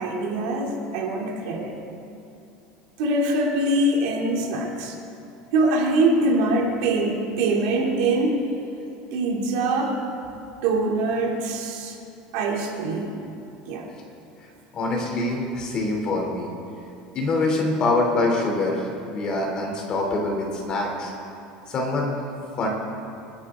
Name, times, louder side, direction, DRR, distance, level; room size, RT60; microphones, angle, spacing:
voice 1, 0.0-1.8 3.0-5.0 5.5-8.4 9.1-10.0 10.3-12.0 12.3-13.1 13.7-13.9, right 2 dB, 70° right, -1 dB, 2.9 m, -23 dB
voice 2, 14.7-16.5 17.1-21.1 21.7-22.1 22.6-22.7, left 2 dB, 30° left, 0 dB, 3.2 m, -24 dB
25.5 x 12.0 x 3.8 m, 2.8 s
cardioid pair, 160°, 3 cm